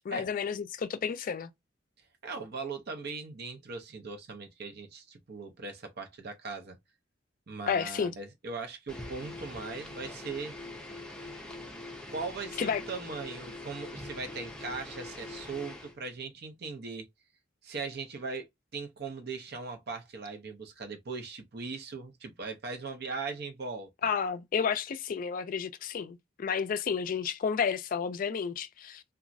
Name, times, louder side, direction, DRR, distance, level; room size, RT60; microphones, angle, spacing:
voice 1, 0.1-1.5 7.7-8.1 12.6-12.8 24.0-29.0, left 6 dB, 45° left, 0.3 m, -31 dB
voice 2, 2.2-6.8 7.5-10.6 12.1-17.1 17.6-18.5 18.7-23.9, right 4 dB, 60° right, 0.7 m, -39 dB
sound 1, 8.9-16.0, left 2 dB, 5° left, 0.6 m, -43 dB
3.0 x 2.3 x 2.5 m
head